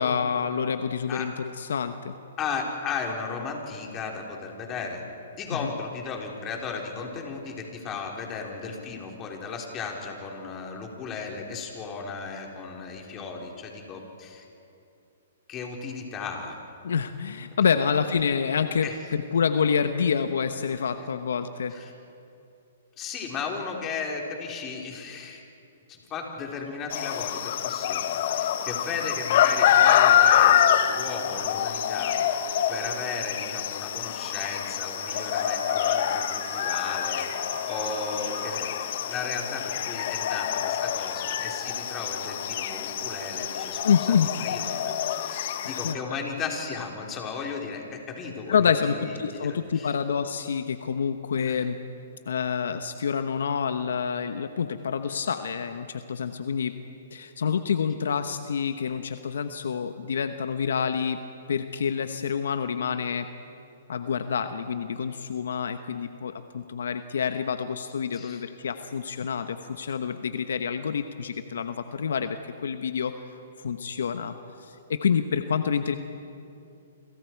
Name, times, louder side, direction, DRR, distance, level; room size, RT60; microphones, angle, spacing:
voice 1, 0.0-2.2 5.6-5.7 16.8-21.8 43.8-44.3 45.6-46.0 48.5-51.8 52.3-56.7 57.1-61.2 61.5-63.3 63.9-73.2 73.6-74.3 74.6-76.0, left 6 dB, 80° left, 9 dB, 1.0 m, -27 dB
voice 2, 2.4-5.0 5.4-14.5 15.5-16.6 18.8-19.0 21.7-21.9 23.0-25.4 25.9-38.7 39.1-44.0 44.4-44.6 45.2-50.0 51.4-51.6 68.1-68.4, left 5 dB, 25° left, 0 dB, 4.0 m, -35 dB
sound 1, 26.9-45.9, left 10 dB, 55° left, 1.1 m, -26 dB
sound 2, 29.3-33.2 34.9-39.0 41.3-46.2, right 5 dB, 70° right, 2.2 m, -43 dB
28.5 x 26.5 x 4.7 m, 2.6 s
hypercardioid pair, 135°, 0 cm